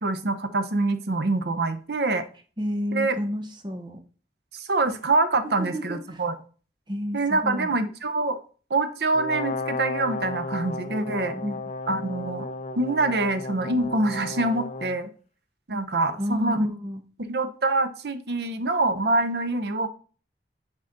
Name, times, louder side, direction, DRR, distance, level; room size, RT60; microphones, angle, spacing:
voice 1, 0.0-2.2 2.9-3.2 4.5-6.4 7.1-8.4 8.7-11.3 11.9-12.5 12.8-15.1 15.7-16.7 17.3-19.9, right 2 dB, 70° right, 10 dB, 0.8 m, -25 dB
voice 2, 2.6-4.0 5.6-6.2 6.9-7.7 11.3-11.6 16.2-17.0, equal, 25° right, 5 dB, 0.9 m, -30 dB
Brass instrument, 9.2-15.0, left 2 dB, 40° left, 0.6 m, -34 dB
7.1 x 4.1 x 3.9 m, 0.39 s
head